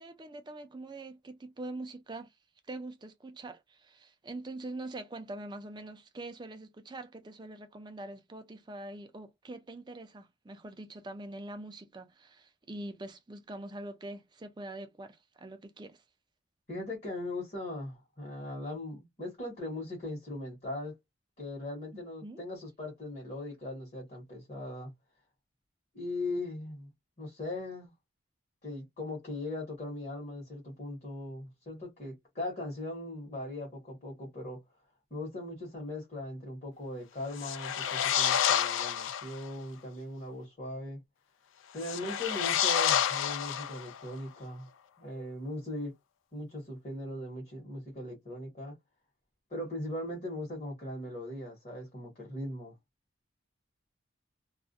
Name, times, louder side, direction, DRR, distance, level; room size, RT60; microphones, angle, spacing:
voice 1, 0.0-2.3 2.7-16.0 22.2-22.4, right 2 dB, 20° right, 0.4 m, -44 dB
voice 2, 16.7-21.0 21.4-24.9 25.9-26.9 27.2-27.9 28.6-34.6 35.1-41.0 41.7-44.7 45.0-45.9 46.3-48.7 49.5-52.7, left 1 dB, 35° left, 1.1 m, -39 dB
sound 1, 37.3-39.4 41.8-44.1, left 9 dB, 80° left, 0.4 m, -29 dB
2.3 x 2.1 x 2.6 m
head